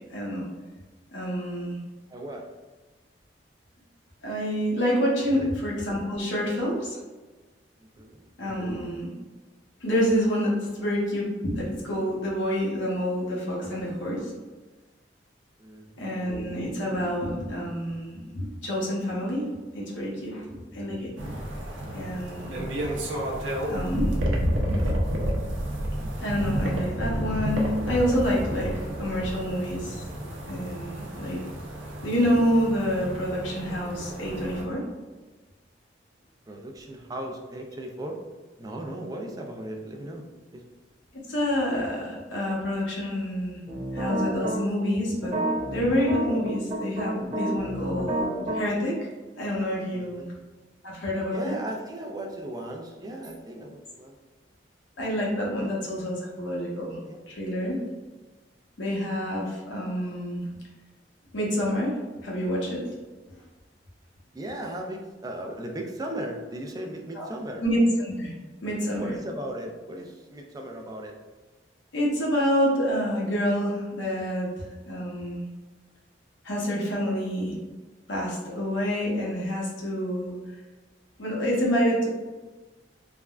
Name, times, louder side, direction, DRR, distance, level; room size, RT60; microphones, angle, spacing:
voice 1, 0.1-0.4 1.1-1.8 4.2-7.0 8.4-9.1 9.8-14.3 16.0-21.1 21.9-22.6 23.7-24.1 26.2-30.0 30.5-31.4 32.0-34.9 41.3-43.6 43.9-45.4 45.7-49.0 49.4-50.2 50.8-51.6 55.0-57.0 57.3-57.8 58.8-60.5 61.3-62.0 62.2-62.9 63.3-63.4 67.1-67.3 67.6-68.3 68.6-69.1 71.9-75.5 76.4-77.5 78.1-80.3 81.2-82.1, equal, 80° left, -4 dB, 0.8 m, -27 dB
voice 2, 2.1-2.5 5.3-5.5 7.8-8.2 15.6-16.1 36.5-38.2 38.6-40.2 40.5-40.6 49.9-50.3 51.3-54.1 55.6-55.7 57.1-57.2 57.5-57.6 64.3-67.6 69.0-71.1, right 1 dB, 20° right, 2 dB, 0.3 m, -37 dB
sound 1, 21.2-34.6, equal, 85° right, 0.5 m, -30 dB
sound 2, 43.7-44.6 45.2-48.6, right 1 dB, 35° right, 0.7 m, -29 dB
3.4 x 2.1 x 2.3 m, 1.3 s
head